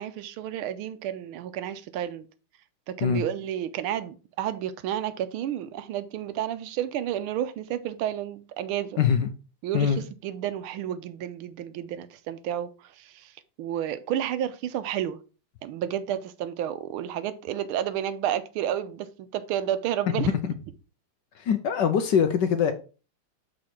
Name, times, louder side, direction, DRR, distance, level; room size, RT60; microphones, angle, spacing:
voice 1, 0.0-2.3 2.9-9.0 9.6-13.3 13.6-15.2 15.6-20.3, right 11 dB, 80° right, 1.5 m, -31 dB
voice 2, 9.0-9.3 9.7-10.0 20.2-20.5 21.4-22.7, left 7 dB, 70° left, 1.2 m, -23 dB
6.4 x 4.6 x 4.3 m
omnidirectional pair, 2.3 m